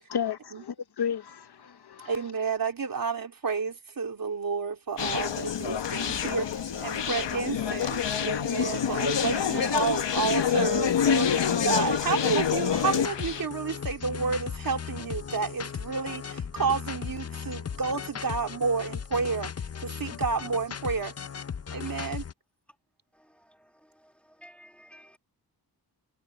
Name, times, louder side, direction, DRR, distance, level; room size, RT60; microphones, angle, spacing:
voice 1, 0.1-2.1, left 8 dB, 65° left, 1.0 m, -33 dB
voice 2, 2.0-6.5 6.8-19.5 19.8-21.2 21.7-22.2, right 5 dB, 55° right, 3.1 m, -30 dB
Conversation, 5.0-13.4, left 8 dB, 85° left, 1.2 m, -27 dB
sound 1, 12.7-22.3, left 7 dB, 35° left, 0.6 m, -37 dB
voice 3, 21.8-22.2 23.1-25.2, equal, 5° left, 1.7 m, -56 dB
wide cardioid pair, 140°, 42 cm